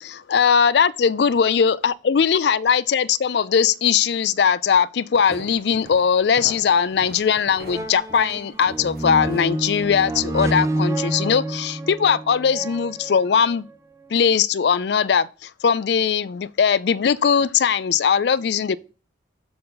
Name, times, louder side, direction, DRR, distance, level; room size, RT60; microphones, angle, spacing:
voice 1, 0.0-13.6 14.1-18.8, left 7 dB, 60° left, 0.4 m, -20 dB
sound 1, 5.2-10.4, right 1 dB, 55° right, 1.3 m, -43 dB
sound 2, 7.2-7.3 7.6-13.6 14.2-14.3, right 1 dB, 15° right, 0.6 m, -28 dB
6.9 x 6.5 x 3.9 m
head